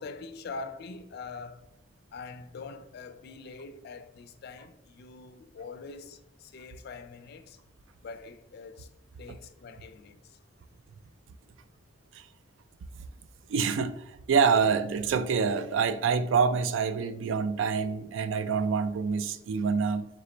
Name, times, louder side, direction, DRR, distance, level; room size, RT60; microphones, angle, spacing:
voice 1, 0.0-1.6 2.1-7.6 8.0-8.9 9.2-10.4 13.0-13.2, left 4 dB, 55° left, 0.4 m, -44 dB
voice 2, 13.5-20.2, right 5 dB, 80° right, 0.3 m, -26 dB
3.9 x 3.3 x 3.2 m
head